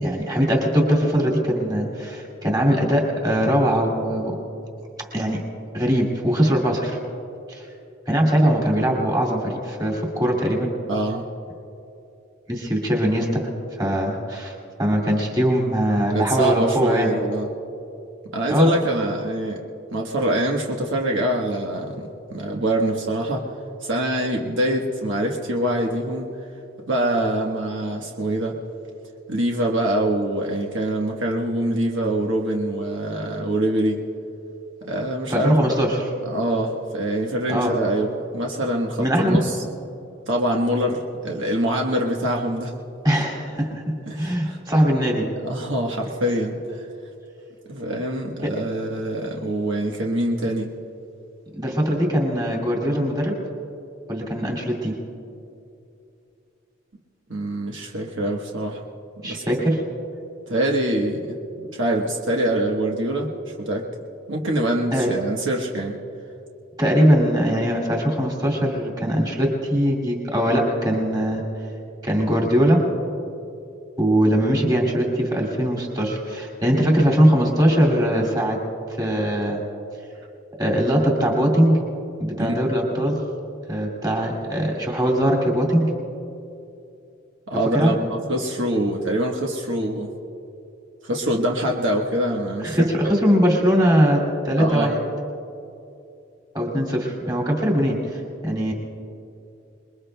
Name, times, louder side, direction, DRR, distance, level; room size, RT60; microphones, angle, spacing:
voice 1, 0.0-4.4 5.1-5.4 5.7-7.0 7.5-7.6 8.1-10.7 12.5-13.4 13.8-14.5 14.8-17.1 18.5-18.7 35.3-36.0 37.5-37.7 39.0-39.4 43.0-43.8 44.2-45.3 48.4-48.5 51.5-53.4 54.1-54.9 59.2-59.8 64.9-65.1 66.8-71.4 72.0-72.9 74.0-78.6 79.0-79.6 80.6-81.8 82.2-83.2 83.7-85.9 87.7-87.9 92.6-95.0 96.5-98.7, equal, 20° right, -1 dB, 2.4 m, -21 dB
voice 2, 10.9-11.2 16.1-17.5 18.3-19.6 19.9-23.4 23.8-26.3 26.9-28.5 29.3-34.0 34.8-35.6 36.2-39.6 40.3-42.7 44.1-44.6 45.4-46.6 47.7-50.7 57.3-58.8 59.2-59.4 60.5-63.3 63.6-63.8 64.3-66.0 82.4-82.6 87.5-90.1 91.0-92.8 93.0-93.1 94.6-94.9, right 1 dB, 70° right, 0 dB, 1.2 m, -24 dB
27.0 x 21.5 x 2.3 m, 2.7 s
head